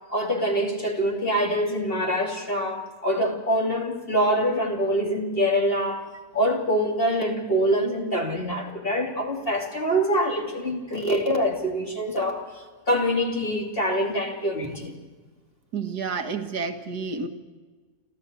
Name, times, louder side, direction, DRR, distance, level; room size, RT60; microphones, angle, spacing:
voice 1, 0.1-6.0 6.3-12.4 12.9-14.9, equal, 35° left, 0 dB, 3.1 m, -25 dB
voice 2, 15.7-17.3, right 5 dB, 85° right, 6 dB, 2.1 m, -30 dB
28.5 x 13.5 x 8.2 m, 1.3 s
omnidirectional pair, 1.7 m